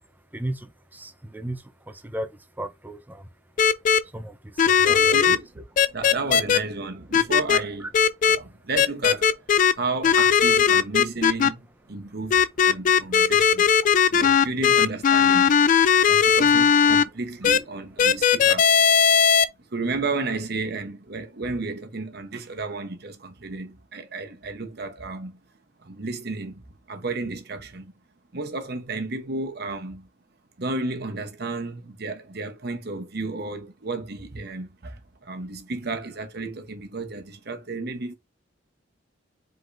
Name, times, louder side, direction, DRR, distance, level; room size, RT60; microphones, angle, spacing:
voice 1, 0.3-3.3 4.0-5.2 7.8-7.9, right 1 dB, 10° right, 0.6 m, -35 dB
sound 1, 3.6-4.0 4.6-5.4 5.8-6.6 7.1-7.6 7.9-8.4 8.8-9.7 10.0-11.5 12.3-17.0 17.4-17.6 18.0-19.4, left 7 dB, 40° left, 0.3 m, -18 dB
voice 2, 4.9-5.5 5.9-7.9 8.3-9.4 9.7-13.7 14.1-18.7 19.7-25.4 25.8-26.6 26.9-27.9 28.3-30.1 30.6-38.1, right 3 dB, 55° right, 1.0 m, -32 dB
4.9 x 3.8 x 2.6 m
head